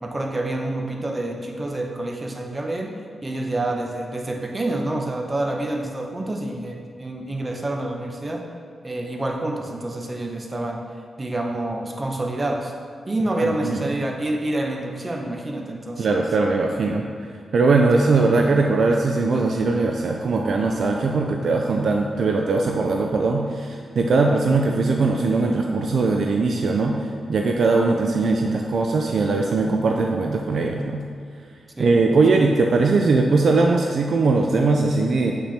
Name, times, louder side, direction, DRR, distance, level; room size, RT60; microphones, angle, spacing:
voice 1, 0.0-2.9 3.2-8.4 8.8-10.8 11.2-12.7 13.1-16.2 31.8-32.2, right 1 dB, 35° right, 1 dB, 1.3 m, -27 dB
voice 2, 13.4-13.8 16.0-17.0 17.5-31.0 31.8-35.3, right 3 dB, 70° right, 2 dB, 0.5 m, -20 dB
7.9 x 6.0 x 4.3 m, 2.2 s
supercardioid pair, 45°, 0 cm